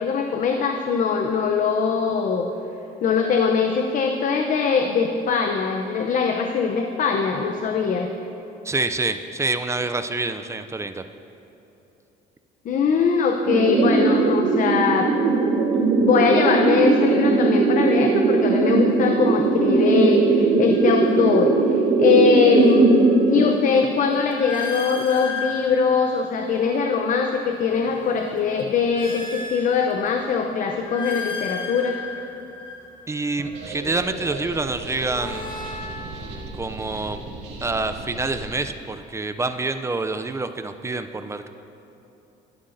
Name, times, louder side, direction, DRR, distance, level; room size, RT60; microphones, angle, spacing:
voice 1, 0.0-2.4 3.0-8.1 12.7-15.1 16.0-22.9 23.3-32.0, left 5 dB, 50° left, 4 dB, 0.6 m, -22 dB
voice 2, 8.6-11.0 33.1-35.5 36.1-37.2 37.6-41.5, right 3 dB, 15° right, 9 dB, 0.4 m, -27 dB
sound 1, 13.5-23.4, right 3 dB, 65° right, 1.1 m, -19 dB
sound 2, 18.7-18.9 20.6-21.8 22.2-27.1 27.6-30.3 30.7-33.7 34.7-36.9, left 5 dB, 30° left, 1.4 m, -36 dB
sound 3, 33.4-38.6, right 2 dB, 85° right, 2.3 m, -37 dB
12.5 x 11.5 x 2.6 m, 3.0 s
cardioid pair, 110°, 17 cm